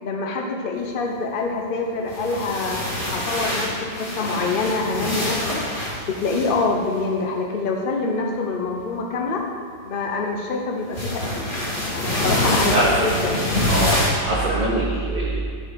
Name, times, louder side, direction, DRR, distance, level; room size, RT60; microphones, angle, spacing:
voice 1, 0.0-2.8 3.0-5.6 6.0-9.4 9.8-11.1 11.3-11.5 11.9-12.7 13.0-13.4, left 3 dB, 70° left, 1 dB, 0.5 m, -25 dB
sound 1, 2.0-7.0 8.8-9.0 10.9-14.1, left 1 dB, 25° left, 1.7 m, -25 dB
voice 2, 12.7-13.0 13.7-13.9 14.2-15.4, right 1 dB, 30° right, -7 dB, 1.0 m, -22 dB
10.5 x 4.9 x 4.6 m, 2.2 s
omnidirectional pair, 2.2 m